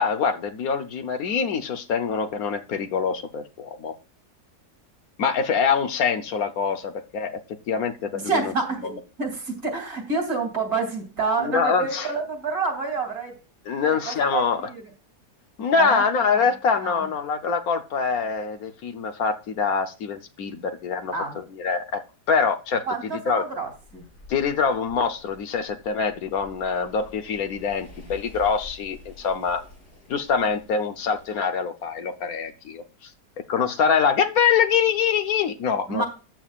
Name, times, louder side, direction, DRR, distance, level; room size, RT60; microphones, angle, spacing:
voice 1, 0.0-4.0 5.2-7.4 7.7-8.5 11.4-12.1 13.7-14.7 15.6-22.0 22.3-22.8 23.1-23.5 24.3-29.6 30.1-33.1 33.5-36.0, left 6 dB, 70° left, 8 dB, 1.3 m, -24 dB
voice 2, 8.2-13.3 13.8-14.8 15.7-16.5 16.8-17.1 21.1-21.4 22.9-24.1 35.9-36.0, right 4 dB, 70° right, 3 dB, 3.2 m, -28 dB
sound 1, 23.7-31.3, left 2 dB, 85° left, 4.4 m, -48 dB
13.5 x 8.9 x 2.4 m, 0.34 s
omnidirectional pair, 1.7 m